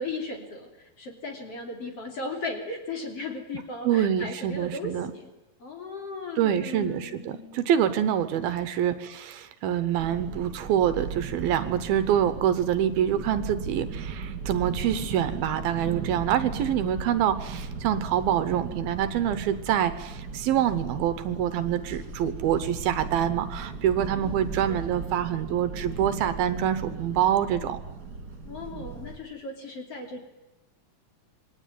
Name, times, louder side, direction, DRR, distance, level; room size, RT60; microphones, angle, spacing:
voice 1, 0.0-5.3 5.6-7.7 24.0-25.0 28.5-30.2, left 2 dB, 40° left, 3 dB, 3.6 m, -37 dB
voice 2, 3.8-5.1 6.4-27.8, right 10 dB, 75° right, 12 dB, 2.7 m, -26 dB
sound 1, 10.0-29.2, right 4 dB, 25° right, 3.6 m, -37 dB
27.0 x 21.5 x 9.3 m, 1.0 s
omnidirectional pair, 4.6 m